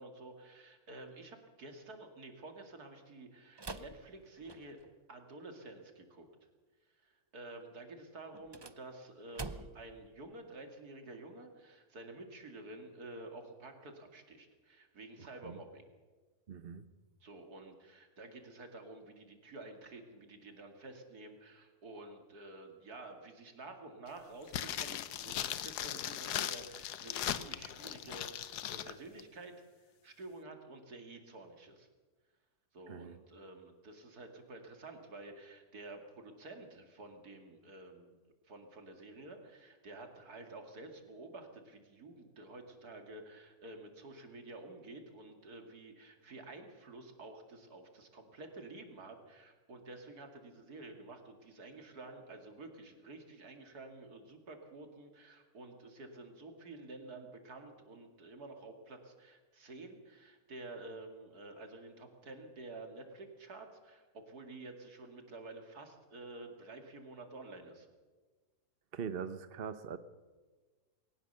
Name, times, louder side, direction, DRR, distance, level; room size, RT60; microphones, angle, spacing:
voice 1, 0.0-4.8 5.1-6.3 6.9-15.8 17.2-31.9 32.7-38.2 38.4-67.9, right 2 dB, 75° right, 5 dB, 2.9 m, -50 dB
sound 1, 3.6-5.0 8.3-10.0, right 3 dB, 30° right, 0.5 m, -46 dB
voice 2, 16.5-16.8 32.9-33.2 68.9-70.0, right 7 dB, 45° right, 12 dB, 0.9 m, -41 dB
sound 2, 24.5-28.9 29.2-29.3, left 11 dB, 85° left, 1.4 m, -38 dB
21.0 x 18.5 x 6.8 m, 1.3 s
omnidirectional pair, 1.7 m